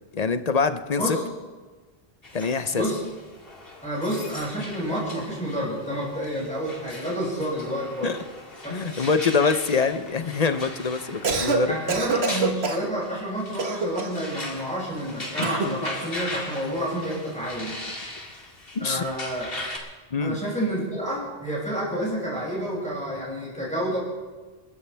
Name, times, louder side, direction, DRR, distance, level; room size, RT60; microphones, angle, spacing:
voice 1, 0.1-1.2 2.3-2.8 8.0-8.2 8.7-11.8 15.4-15.6 18.7-19.0 20.1-20.4, left 5 dB, 45° left, 10 dB, 0.7 m, -24 dB
sound 1, 2.2-19.8, left 2 dB, 65° left, 2.4 m, -39 dB
voice 2, 3.8-8.1 8.6-8.8 11.7-17.8 18.8-19.5 20.2-24.0, equal, 5° left, -7 dB, 6.5 m, -29 dB
Cough, 11.1-11.6 11.9-12.9 13.6-14.2 15.4-15.8, right 3 dB, 85° right, 1.6 m, -25 dB
29.0 x 13.0 x 3.4 m, 1.3 s
omnidirectional pair, 1.0 m